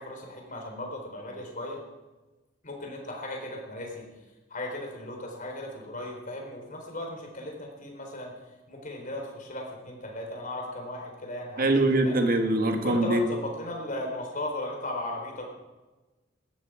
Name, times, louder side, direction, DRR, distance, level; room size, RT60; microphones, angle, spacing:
voice 1, 0.0-1.8 2.6-4.0 4.5-8.3 8.7-12.2 12.8-15.5, left 1 dB, 45° left, 1 dB, 4.0 m, -36 dB
voice 2, 11.6-13.2, right 2 dB, 50° right, 5 dB, 1.8 m, -23 dB
18.5 x 13.5 x 5.0 m, 1.2 s
head